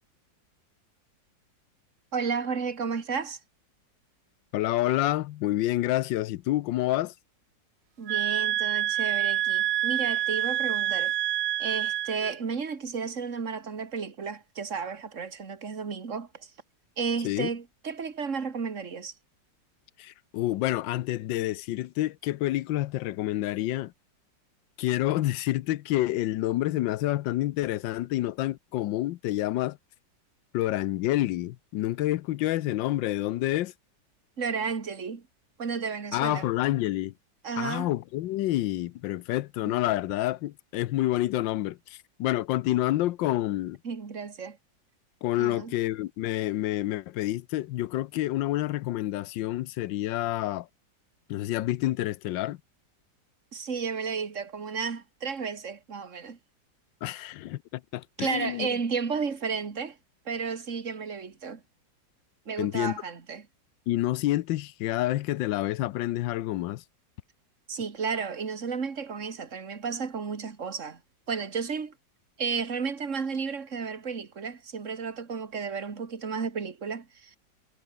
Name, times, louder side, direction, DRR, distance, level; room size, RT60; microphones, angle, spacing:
voice 1, 2.1-3.4 8.0-11.1 11.6-16.5 17.0-19.1 34.4-35.2 35.6-36.5 37.4-37.9 39.7-39.8 43.8-44.6 45.4-45.7 53.5-56.4 58.2-60.0 60.3-61.6 62.5-63.5 67.7-71.0 71.3-71.9 72.4-77.4, right 5 dB, 40° right, 2.4 m, -33 dB
voice 2, 4.5-7.1 17.2-17.5 20.0-23.9 24.8-29.8 30.5-33.7 36.1-37.1 37.6-43.8 45.2-50.7 51.3-52.6 57.0-58.7 62.6-63.0 63.9-66.8, left 15 dB, 80° left, 1.4 m, -28 dB
sound 1, 8.1-12.4, right 13 dB, 75° right, 1.3 m, -27 dB
omnidirectional pair, 2.0 m